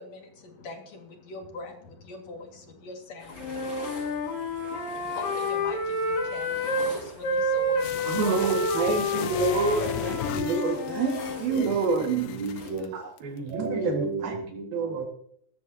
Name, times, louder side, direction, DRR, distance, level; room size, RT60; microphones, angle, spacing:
voice 1, 0.0-9.9, left 3 dB, 50° left, 3 dB, 2.8 m, -44 dB
sound 1, 3.2-12.7, left 1 dB, 20° left, 5.8 m, -45 dB
Wind instrument woodwind instrument, 3.4-6.9 7.2-11.4, left 1 dB, 70° left, 4.3 m, -29 dB
sound 2, 7.8-12.8 13.2-13.3, left 10 dB, 85° left, 1.5 m, -37 dB
voice 2, 8.1-12.3 12.9-14.3 14.7-15.1, right 4 dB, 80° right, 3 dB, 3.6 m, -27 dB
voice 3, 11.4-13.0 13.5-15.1, right 3 dB, 40° right, -1 dB, 6.6 m, -34 dB
18.5 x 13.5 x 2.8 m, 0.67 s
omnidirectional pair, 4.2 m